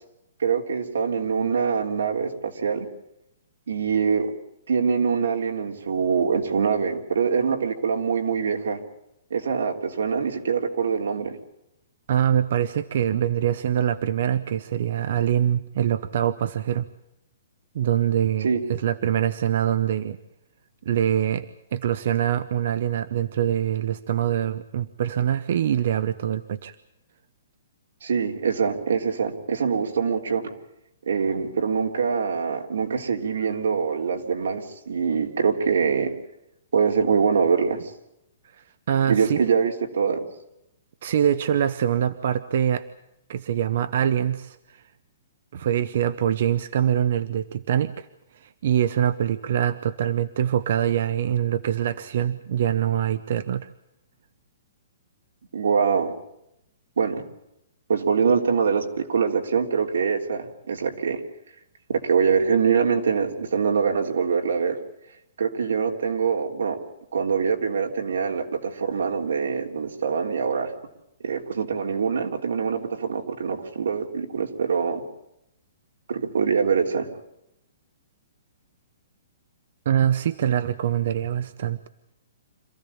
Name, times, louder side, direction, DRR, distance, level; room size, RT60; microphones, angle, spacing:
voice 1, 0.4-2.9 3.7-4.3 4.7-8.8 9.3-11.4 18.4-18.6 28.0-30.4 31.1-36.1 36.7-37.8 39.1-40.3 55.5-56.1 57.0-57.2 57.9-61.2 61.9-64.8 65.4-66.8 67.1-70.7 71.2-75.0 76.1-77.1, right 6 dB, 80° right, 3 dB, 3.5 m, -24 dB
voice 2, 12.1-16.9 17.7-20.2 20.8-26.8 38.5-39.4 41.0-42.8 43.3-44.8 45.5-48.1 48.3-53.7 79.8-81.9, right 10 dB, 45° right, 13 dB, 0.8 m, -24 dB
26.0 x 15.5 x 8.7 m, 0.82 s
hypercardioid pair, 175°, 0 cm